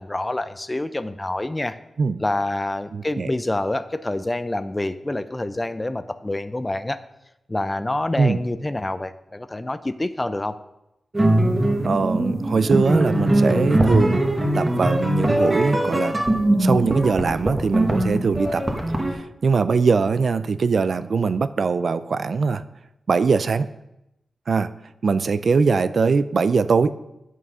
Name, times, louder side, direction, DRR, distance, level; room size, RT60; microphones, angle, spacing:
voice 1, 0.0-1.8 2.2-7.0 7.5-10.6, left 2 dB, 20° left, 13 dB, 0.5 m, -27 dB
voice 2, 2.9-3.3 8.2-8.4 11.8-14.2 14.5-16.1 16.6-18.6 19.4-22.6 23.1-23.7 24.5-24.7 25.0-26.9, right 5 dB, 60° right, 13 dB, 0.4 m, -21 dB
sound 1, 11.1-19.1, right 1 dB, 25° right, 1.4 m, -21 dB
9.4 x 6.1 x 5.5 m, 0.89 s
wide cardioid pair, 90°, 0 cm